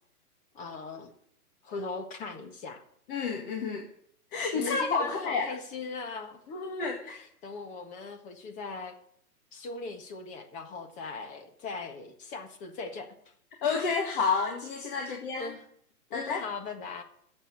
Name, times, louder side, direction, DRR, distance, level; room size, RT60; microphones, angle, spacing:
voice 1, 0.5-1.1 1.6-2.8 4.5-8.9 9.5-13.1 14.9-15.6 16.1-17.0, left 3 dB, 15° left, 6 dB, 1.4 m, -39 dB
voice 2, 3.1-3.9 4.3-5.5 6.8-7.0 13.6-15.5 16.1-16.4, left 5 dB, 35° left, 2 dB, 1.8 m, -29 dB
13.0 x 8.0 x 9.9 m, 0.68 s
hypercardioid pair, 155°, 45 cm